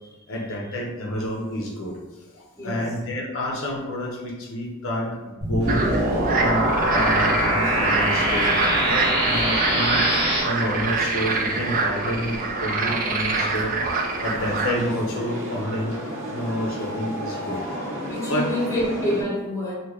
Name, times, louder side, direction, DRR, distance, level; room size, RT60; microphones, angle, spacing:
voice 1, 0.3-2.0 2.3-5.8 6.3-10.0 10.4-16.0 16.3-17.6 18.3-18.8, equal, 65° left, -1 dB, 0.5 m, -29 dB
voice 2, 2.5-2.9 9.7-9.8 18.0-19.7, left 1 dB, 15° left, -4 dB, 0.8 m, -27 dB
sound 1, 5.4-10.4, right 1 dB, 25° right, 0.8 m, -22 dB
sound 2, 5.6-19.2, equal, 65° right, 0.8 m, -34 dB
sound 3, 5.7-14.7, right 4 dB, 40° right, 0.4 m, -26 dB
3.0 x 2.2 x 3.6 m, 1.2 s
head